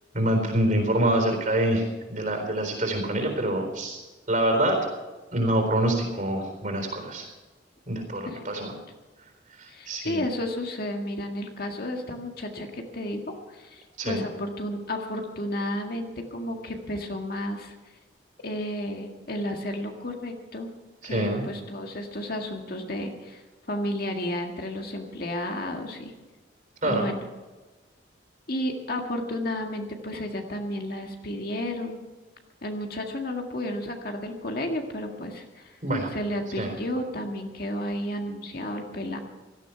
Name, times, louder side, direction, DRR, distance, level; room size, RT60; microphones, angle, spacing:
voice 1, 0.1-1.8 2.1-4.0 4.3-4.8 5.3-7.3 7.9-8.7 9.6-10.2 14.0-14.2 21.0-21.4 26.8-27.1 35.8-36.1 36.6-36.7, right 1 dB, 45° right, 3 dB, 4.0 m, -25 dB
voice 2, 8.3-8.8 9.7-17.7 18.4-20.7 21.0-26.1 26.8-27.2 28.5-32.0 32.6-35.8 36.1-39.2, left 1 dB, 55° left, 3 dB, 1.9 m, -32 dB
17.0 x 13.0 x 5.8 m, 1.2 s
head